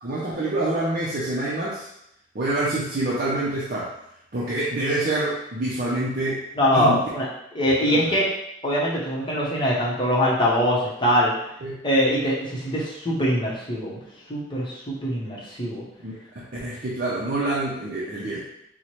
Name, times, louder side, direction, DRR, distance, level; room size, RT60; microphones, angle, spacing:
voice 1, 0.0-1.9 2.3-3.9 4.3-6.4 6.7-7.0 7.8-8.1 11.6-11.8 16.0-18.5, right 2 dB, 45° right, -7 dB, 0.5 m, -26 dB
voice 2, 6.6-7.3 7.5-8.3 8.6-11.3 11.8-14.0 14.3-15.8, equal, 25° left, -5 dB, 0.7 m, -23 dB
4.3 x 2.1 x 3.0 m, 0.79 s
head